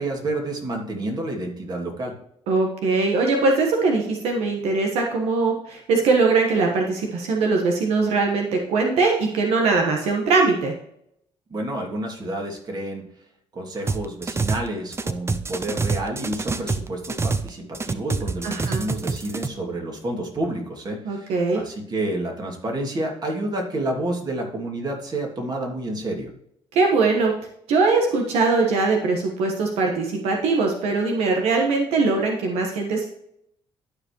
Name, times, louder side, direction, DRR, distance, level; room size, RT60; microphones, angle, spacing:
voice 1, 0.0-2.1 11.5-13.0 13.5-26.3, right 1 dB, 40° right, 1 dB, 2.6 m, -29 dB
voice 2, 2.5-10.7 18.4-18.8 21.0-21.6 26.7-27.3 27.7-33.1, right 3 dB, 85° right, 2 dB, 1.3 m, -21 dB
sound 1, 13.9-14.7 14.9-17.5 17.7-19.5, right 4 dB, 25° right, 0.7 m, -26 dB
12.0 x 5.0 x 3.1 m, 0.73 s
cardioid pair, 80°, 10 cm